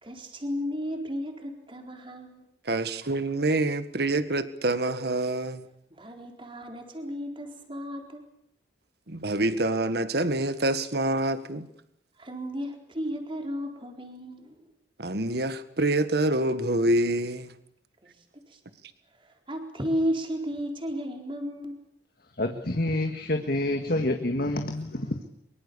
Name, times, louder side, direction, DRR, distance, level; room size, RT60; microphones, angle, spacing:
voice 1, 0.0-2.4 6.0-8.2 12.2-14.6 18.5-18.6 19.2-21.8, equal, 30° right, 3 dB, 4.1 m, -33 dB
voice 2, 2.7-5.6 9.1-11.7 15.0-17.5, right 2 dB, 60° right, 11 dB, 1.7 m, -26 dB
voice 3, 22.4-25.3, left 1 dB, 55° left, 5 dB, 1.8 m, -28 dB
24.0 x 23.5 x 7.0 m, 0.75 s
head